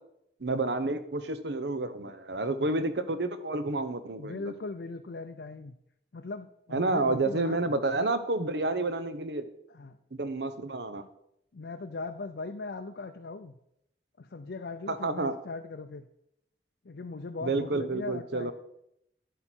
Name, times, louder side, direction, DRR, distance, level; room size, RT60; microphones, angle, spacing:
voice 1, 0.4-4.5 6.7-9.5 10.1-11.0 14.9-15.3 17.4-18.5, right 2 dB, 70° right, 11 dB, 0.8 m, -30 dB
voice 2, 4.2-5.7 6.1-7.6 9.7-10.0 11.5-13.6 14.2-16.1 16.8-18.5, left 3 dB, 70° left, 6 dB, 0.5 m, -39 dB
10.0 x 8.3 x 4.5 m, 0.77 s
head